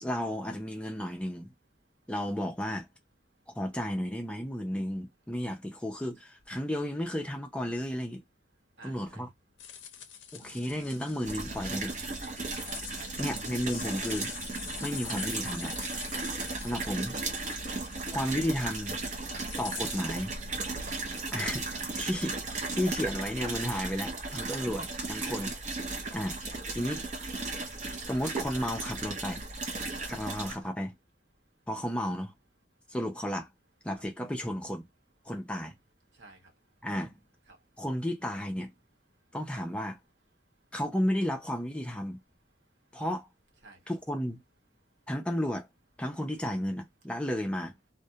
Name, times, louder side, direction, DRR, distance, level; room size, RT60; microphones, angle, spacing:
voice 1, 0.0-1.5 2.1-2.9 3.5-8.2 8.8-9.3 10.3-12.5 13.2-14.3 14.8-15.7 16.6-17.1 18.1-19.0 19.6-20.3 21.3-22.4 22.7-25.5 26.1-27.0 28.1-29.4 30.1-30.9 31.7-32.3 32.9-33.5 33.8-34.8 35.3-35.7 36.8-37.2 37.8-38.7 39.3-40.0 40.7-42.2 42.9-43.3 43.9-44.4 45.1-45.7 46.0-47.7, equal, 5° left, 0.4 m, -33 dB
voice 2, 8.8-9.3 12.9-13.5 16.7-17.1 25.2-25.5 26.9-27.6 30.6-30.7 33.9-34.0 36.1-36.9 37.5-37.8 39.1-39.3 40.6-40.7 42.5-42.7 43.6-43.9, right 2 dB, 65° right, 0.9 m, -54 dB
sound 1, 9.6-20.1, left 8 dB, 90° left, 0.5 m, -45 dB
sound 2, 10.4-23.0, right 4 dB, 85° right, 0.4 m, -50 dB
sound 3, 11.2-30.5, right 3 dB, 40° right, 0.6 m, -36 dB
2.3 x 2.1 x 2.7 m
head